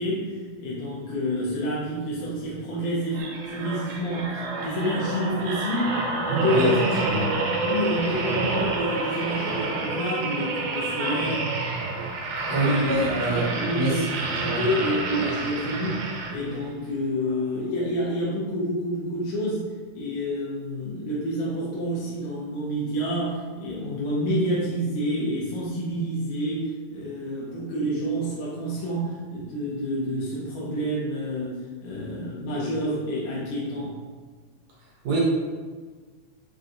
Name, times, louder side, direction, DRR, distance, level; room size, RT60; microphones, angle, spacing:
voice 1, 0.0-7.0 7.6-11.5 12.5-19.7 19.9-34.0, equal, 90° left, -7 dB, 2.3 m, -28 dB
sound 1, 3.1-16.7 17.2-17.4, right 3 dB, 85° right, 2.1 m, -29 dB
voice 2, 6.4-6.7 7.0-7.3 12.5-13.5 13.7-14.0 14.5-14.6 35.0-35.2, right 2 dB, 70° right, -5 dB, 1.9 m, -25 dB
5.6 x 2.5 x 2.5 m, 1.5 s
omnidirectional pair, 3.5 m